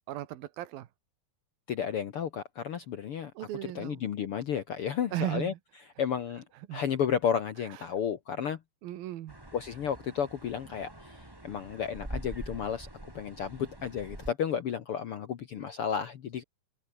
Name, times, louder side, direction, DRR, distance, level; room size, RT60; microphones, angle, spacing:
voice 1, 0.1-0.9 3.4-4.0 5.1-5.6 6.7-6.8 8.8-9.3, right 13 dB, 85° right, 3.1 m, -36 dB
voice 2, 1.7-3.3 3.7-5.5 6.0-6.4 6.7-8.6 9.5-12.9 13.1-16.4, left 8 dB, 65° left, 1.4 m, -32 dB
sound 1, 9.3-14.3, right 1 dB, 10° right, 1.6 m, -44 dB
open air
omnidirectional pair, 4.1 m